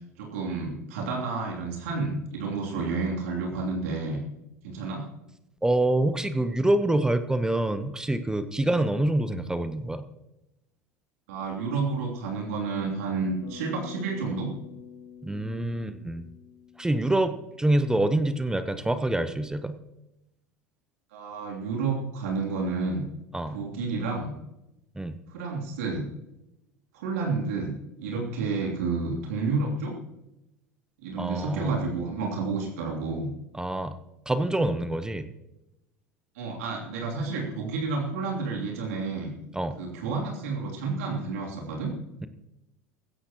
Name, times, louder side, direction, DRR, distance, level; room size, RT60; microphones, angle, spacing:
voice 1, 0.2-4.2 4.6-5.0 11.3-14.5 21.1-23.0 23.5-24.3 25.3-26.1 26.9-29.9 31.0-33.3 36.3-39.3 39.8-41.9, right 4 dB, 65° right, -1 dB, 3.0 m, -30 dB
voice 2, 5.6-10.0 15.2-16.3 16.8-19.8 23.3-23.6 25.0-25.2 31.2-31.8 33.5-34.0 34.3-35.3 39.5-39.8, right 1 dB, 10° right, 11 dB, 1.0 m, -26 dB
Bass guitar, 13.4-17.8, left 8 dB, 60° left, 2.6 m, -47 dB
18.0 x 16.0 x 3.0 m, 0.92 s
figure-of-eight pair, 75°, 9 cm